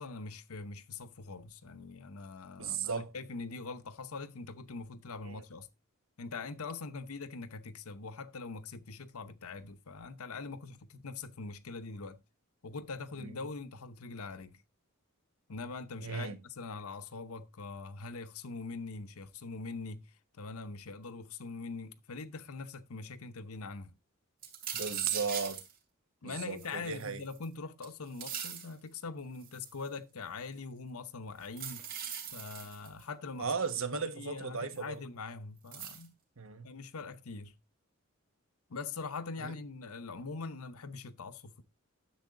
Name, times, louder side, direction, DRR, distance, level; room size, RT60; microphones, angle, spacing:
voice 1, 0.0-5.7 6.2-12.2 12.6-14.6 15.5-20.0 20.3-23.9 26.2-31.8 32.3-33.5 33.9-36.1 36.6-37.5 38.7-41.6, left 4 dB, 80° left, 0.8 m, -43 dB
voice 2, 2.6-3.1 5.2-5.4 13.2-13.3 16.0-16.4 24.7-25.6 26.2-27.2 33.4-35.0 36.4-36.7 39.4-39.5, right 5 dB, 65° right, 1.3 m, -35 dB
sound 1, 24.4-25.7 26.6-27.5 27.8-28.7 29.4-29.9 31.5-33.0 34.8-34.9 35.7-36.1, right 8 dB, 40° right, 2.6 m, -41 dB
10.5 x 7.4 x 3.7 m
head